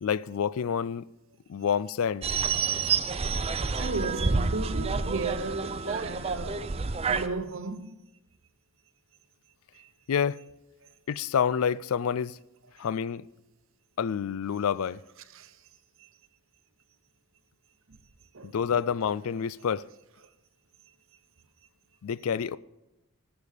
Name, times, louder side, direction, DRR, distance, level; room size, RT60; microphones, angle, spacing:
voice 1, 0.0-1.1 1.5-2.3 10.1-10.4 11.1-12.4 12.8-13.3 14.0-15.0 18.4-19.9 22.0-22.6, left 7 dB, 75° left, 0.4 m, -28 dB
sound 1, 2.2-7.3, right 5 dB, 25° right, 0.5 m, -29 dB
voice 2, 3.8-6.8 7.1-8.0 9.7-9.9 12.1-12.2 15.3-15.6 16.0-16.1 17.9-18.0 18.3-18.9, right 3 dB, 60° right, 0.8 m, -35 dB
19.5 x 7.0 x 5.0 m
head